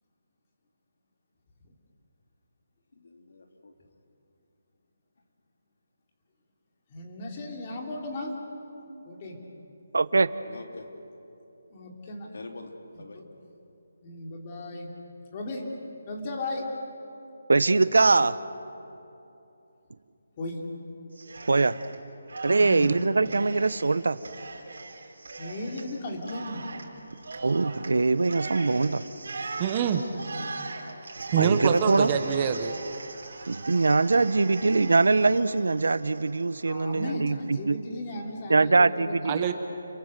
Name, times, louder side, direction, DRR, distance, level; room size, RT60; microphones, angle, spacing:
voice 1, 2.9-3.7 10.4-10.9 12.0-13.2, left 3 dB, 65° left, 3 dB, 3.2 m, -45 dB
voice 2, 6.9-8.4 9.1-9.4 11.7-12.3 13.1-13.2 14.0-14.9 15.3-15.7 16.1-16.7 20.4-20.6 22.6-23.0 25.4-26.7 30.1-30.5 36.6-39.1, left 1 dB, 25° left, 0 dB, 3.1 m, -36 dB
voice 3, 9.9-10.3 17.5-18.3 21.5-21.7 22.4-24.2 27.4-29.0 31.4-32.1 33.5-37.8 38.5-39.5, right 3 dB, 80° right, 15 dB, 0.9 m, -22 dB
Cheering, 21.1-22.0 22.3-36.7, right 3 dB, 65° right, 3.8 m, -40 dB
voice 4, 29.6-30.0 31.3-32.7 39.2-39.5, right 8 dB, 20° right, 7 dB, 0.9 m, -25 dB
29.5 x 23.0 x 6.7 m, 2.8 s
hypercardioid pair, 175°, 0 cm